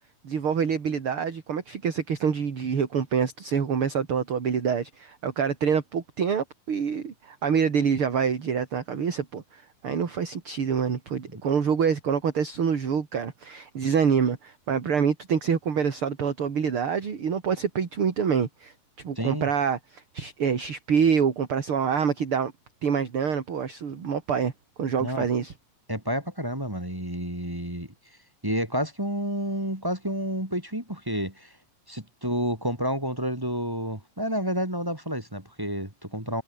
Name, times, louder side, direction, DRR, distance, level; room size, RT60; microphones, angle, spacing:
voice 1, 0.2-18.7 19.0-22.5 22.8-24.5 24.8-25.5, right 7 dB, 40° right, 3.0 m, -26 dB
voice 2, 19.2-19.5 25.0-25.3 25.9-27.9 28.4-31.5 31.9-36.4, equal, 5° right, 2.3 m, -30 dB
omnidirectional pair, 4.0 m